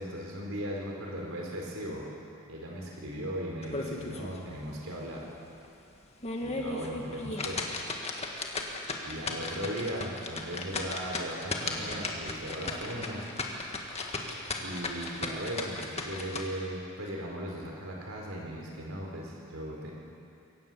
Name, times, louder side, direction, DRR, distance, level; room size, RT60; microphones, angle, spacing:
voice 1, 0.0-2.0 2.5-5.3 6.4-7.6 9.0-13.3 14.6-19.9, equal, 75° right, -1 dB, 4.2 m, -37 dB
sound 1, 3.6-4.4 4.7-4.8 5.3-5.4 6.0-16.4, left 3 dB, 30° left, 1.8 m, -36 dB
23.5 x 18.5 x 7.4 m, 2.5 s
head